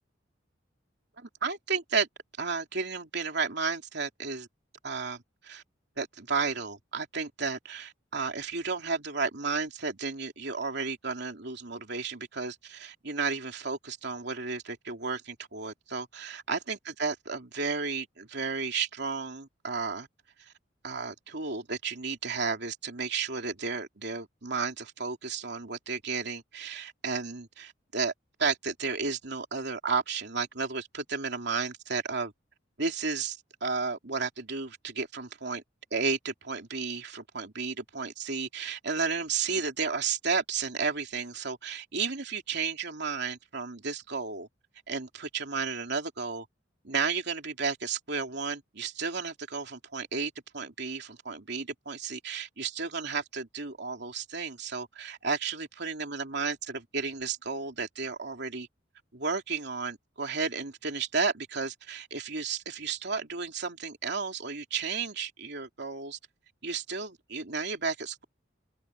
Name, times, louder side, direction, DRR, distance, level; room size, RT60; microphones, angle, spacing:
voice 1, 1.2-2.1 2.4-4.5 4.8-5.6 6.0-20.1 20.8-28.1 28.4-32.3 32.8-35.6 35.9-44.5 44.9-46.5 46.8-58.7 59.1-66.2 66.6-68.2, right 5 dB, 65° right, 3.1 m, -33 dB
open air
head